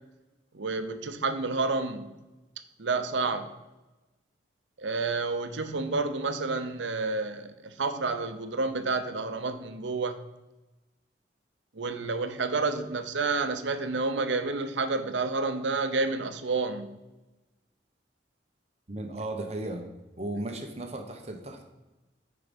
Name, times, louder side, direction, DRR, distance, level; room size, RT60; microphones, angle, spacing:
voice 1, 0.5-2.1 2.8-3.5 4.8-10.2 11.8-16.9, right 3 dB, 80° right, 9 dB, 0.8 m, -29 dB
voice 2, 18.9-19.9 20.2-21.6, right 1 dB, 35° right, 3 dB, 0.9 m, -35 dB
9.2 x 4.8 x 5.2 m, 1.1 s
head